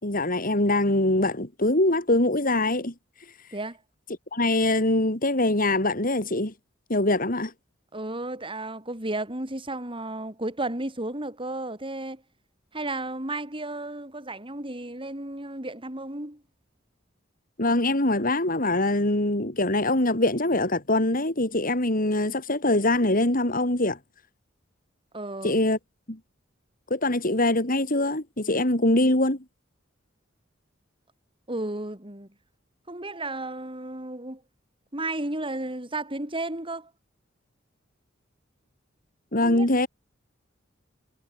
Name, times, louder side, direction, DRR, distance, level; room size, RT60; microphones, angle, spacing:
voice 1, 0.0-3.5 4.3-6.5 6.9-7.5 17.6-24.0 25.4-25.8 26.1-26.2 26.9-29.4 39.3-39.9, left 1 dB, 45° left, 4.8 m, -23 dB
voice 2, 7.9-12.2 12.7-16.4 25.1-25.6 31.5-32.3 32.9-34.4 34.9-36.9 39.4-39.7, right 2 dB, 25° right, 5.0 m, -33 dB
head